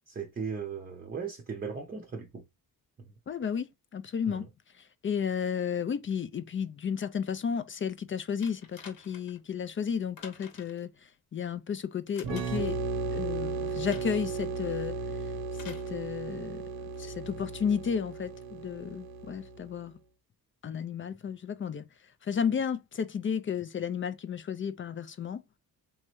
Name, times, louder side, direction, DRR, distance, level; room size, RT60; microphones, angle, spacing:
voice 1, 0.1-2.4 3.0-3.1 4.3-4.4, right 5 dB, 25° right, 0.6 m, -37 dB
voice 2, 3.3-4.5 4.8-12.8 13.1-15.0 15.5-16.6 17.0-20.0 20.6-21.8 22.2-25.4, left 7 dB, 35° left, 0.4 m, -33 dB
sound 1, 8.4-9.4 10.2-10.9 12.1-12.7 13.9-14.3 15.5-15.9 17.0-17.1, left 6 dB, 65° left, 1.1 m, -50 dB
sound 2, 12.2-19.8, right 4 dB, 85° right, 0.7 m, -35 dB
3.5 x 3.1 x 3.0 m
cardioid pair, 115°, 37 cm